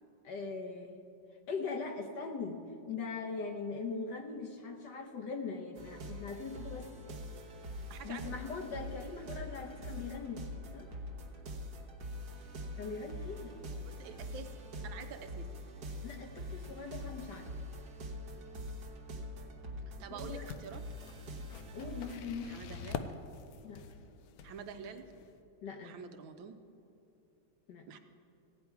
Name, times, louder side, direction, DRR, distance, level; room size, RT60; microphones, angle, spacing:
voice 1, 0.2-1.0 1.5-2.6 2.9-6.9 8.0-10.4 10.7-10.9 12.8-13.5 16.0-17.5 20.1-20.5 21.7-22.6 23.6-23.8 25.6-26.0 27.7-27.9, left 4 dB, 65° left, 4 dB, 1.4 m, -41 dB
sound 1, 5.8-22.2, equal, 60° right, 1.5 m, -44 dB
voice 2, 7.9-8.2 9.2-9.5 13.8-15.5 20.0-20.8 22.4-23.0 24.4-25.0 25.8-26.6 27.9-28.0, right 6 dB, 75° right, 7 dB, 1.4 m, -47 dB
sound 2, 20.4-25.4, left 6 dB, 85° left, 0.8 m, -46 dB
15.5 x 9.3 x 4.6 m, 2.8 s
omnidirectional pair, 2.2 m